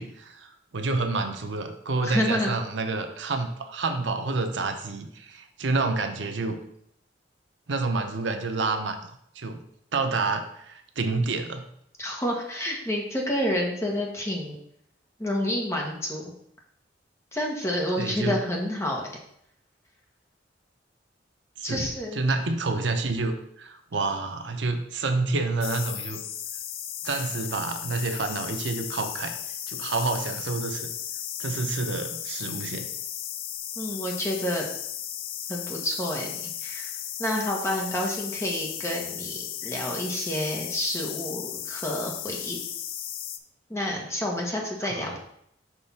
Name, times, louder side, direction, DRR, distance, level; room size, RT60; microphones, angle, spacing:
voice 1, 0.0-6.6 7.7-9.0 9.4-9.6 9.9-11.7 18.0-18.4 21.6-26.2 27.0-29.3 29.7-30.9 31.4-32.9 44.8-45.2, right 3 dB, 75° right, 6 dB, 0.7 m, -28 dB
voice 2, 2.0-2.5 12.0-14.6 15.2-16.2 17.3-19.0 21.6-22.2 27.1-27.2 33.8-34.7 35.5-36.9 37.2-42.6 43.7-45.2, left 1 dB, 15° left, -1 dB, 1.1 m, -29 dB
sound 1, 25.6-43.4, left 10 dB, 50° left, 0.4 m, -35 dB
6.1 x 3.3 x 5.5 m, 0.72 s
head